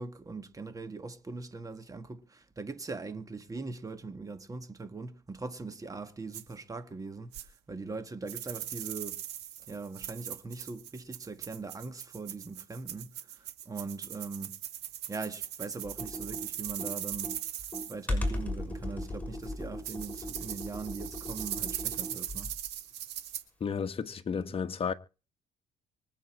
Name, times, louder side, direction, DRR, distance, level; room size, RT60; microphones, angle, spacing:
voice 1, 0.0-9.2 9.7-13.3 13.6-14.6 15.1-17.4 17.9-22.5 24.4-24.5, right 3 dB, 20° right, 1.6 m, -41 dB
sound 1, 6.3-6.4 7.3-7.4 8.3-17.9 19.4-19.5 19.8-23.4, right 11 dB, 85° right, 2.1 m, -39 dB
Computer keyboard, 15.8-22.7, left 1 dB, 10° left, 6.6 m, -37 dB
voice 2, 23.6-24.9, left 6 dB, 35° left, 1.4 m, -32 dB
24.5 x 8.3 x 4.4 m
cardioid pair, 110°, 17 cm